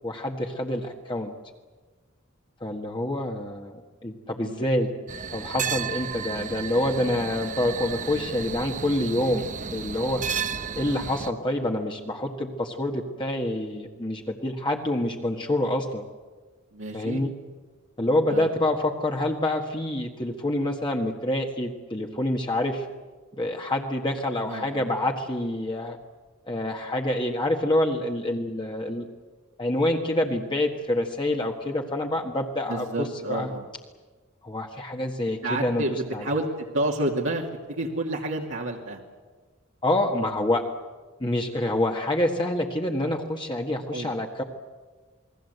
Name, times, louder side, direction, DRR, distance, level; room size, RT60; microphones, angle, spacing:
voice 1, 0.0-1.3 2.6-4.9 5.3-9.4 9.7-10.2 10.7-16.0 16.9-17.3 18.0-22.9 23.4-26.0 26.5-29.1 29.6-33.5 34.4-36.2 39.8-40.6 41.2-44.4, left 1 dB, 25° left, 1 dB, 1.6 m, -27 dB
sound 1, 5.1-11.3, right 6 dB, 40° right, 0.9 m, -33 dB
voice 2, 16.7-17.2 18.3-18.5 24.5-24.9 32.7-33.7 35.4-36.5 36.7-39.0 43.9-44.1, right 1 dB, 70° right, -1 dB, 2.5 m, -29 dB
28.5 x 21.0 x 8.0 m, 1.4 s
head